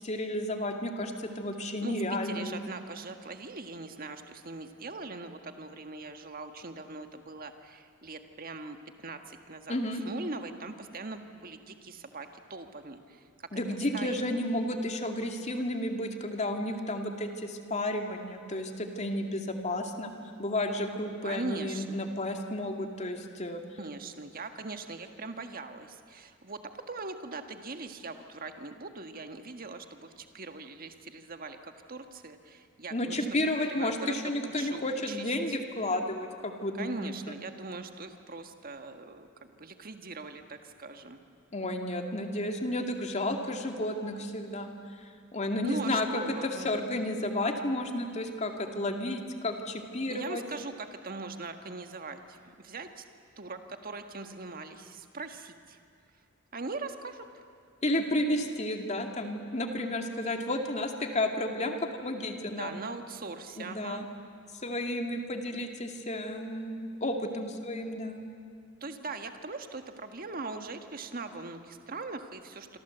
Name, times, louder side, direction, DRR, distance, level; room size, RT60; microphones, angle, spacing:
voice 1, 0.0-2.6 9.7-10.0 13.5-20.1 20.4-23.6 32.9-37.4 41.5-44.7 45.0-50.4 57.8-62.8 63.6-64.1 64.6-68.3, left 1 dB, 35° left, 4 dB, 2.4 m, -32 dB
voice 2, 1.8-9.8 10.0-13.3 13.9-14.4 21.2-22.0 23.8-26.6 26.9-33.3 33.6-34.2 34.4-35.3 36.8-41.2 45.6-46.7 50.1-53.0 53.4-55.8 56.5-57.2 62.5-64.1 68.8-72.8, right 3 dB, 45° right, 6 dB, 1.6 m, -41 dB
26.5 x 25.5 x 8.1 m, 2.3 s
head